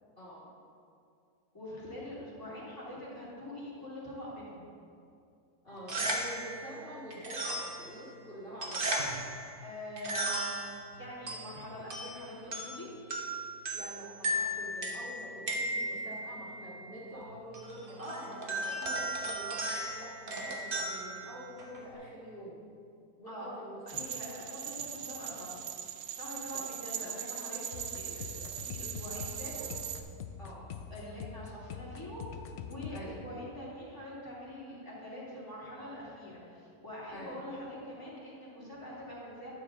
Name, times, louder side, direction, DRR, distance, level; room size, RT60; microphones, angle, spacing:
voice 1, 0.2-0.5 5.6-9.2 13.7-19.6 20.0-22.6 23.2-24.2 26.5-26.7 27.0-27.1 30.4-30.7 32.9-33.2 37.1-37.4, equal, 40° left, -10 dB, 1.9 m, -46 dB
voice 2, 1.5-4.6 9.6-12.9 18.0-18.6 23.3-23.5 23.9-25.6 26.1-29.7 30.9-32.3 32.6-39.5, left 1 dB, 15° left, -8 dB, 2.5 m, -44 dB
sound 1, 5.7-21.9, right 1 dB, 40° right, 1.1 m, -37 dB
sound 2, 23.9-30.0, right 9 dB, 75° right, 1.0 m, -40 dB
sound 3, 27.7-33.0, left 7 dB, 65° left, 0.6 m, -43 dB
11.5 x 7.3 x 3.7 m, 2.4 s
omnidirectional pair, 1.6 m